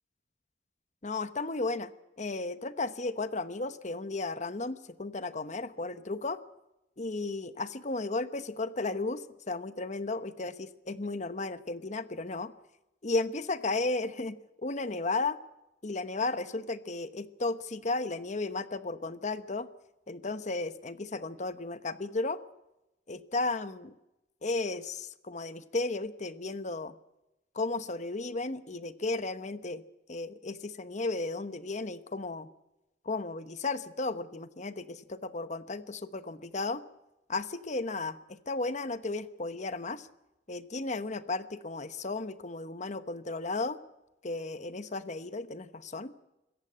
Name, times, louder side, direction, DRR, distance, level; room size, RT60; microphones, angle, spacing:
voice 1, 1.0-1.9 2.2-6.4 7.0-12.5 13.0-14.4 14.6-15.4 15.8-19.7 20.1-22.4 23.1-23.9 24.4-26.9 27.5-29.8 30.1-32.5 33.0-36.8 37.3-40.1 40.5-43.8 44.2-46.1, left 3 dB, 40° left, 12 dB, 1.0 m, -34 dB
25.5 x 15.0 x 8.7 m, 0.96 s
head